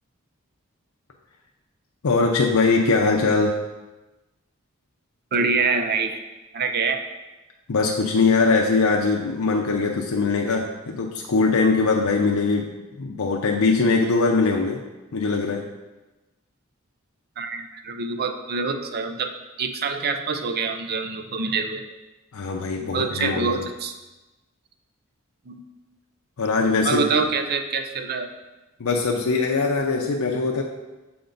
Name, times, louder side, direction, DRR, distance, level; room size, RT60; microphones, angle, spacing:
voice 1, 2.0-3.6 7.7-12.7 13.0-14.8 15.1-15.6 22.3-23.6 26.4-27.0 28.8-30.6, left 4 dB, 85° left, 0 dB, 0.6 m, -21 dB
voice 2, 5.3-6.2 6.5-7.0 17.4-21.9 22.8-23.9 25.5-25.6 26.8-28.3, right 4 dB, 50° right, 6 dB, 0.5 m, -25 dB
6.9 x 4.3 x 3.9 m, 1.1 s
head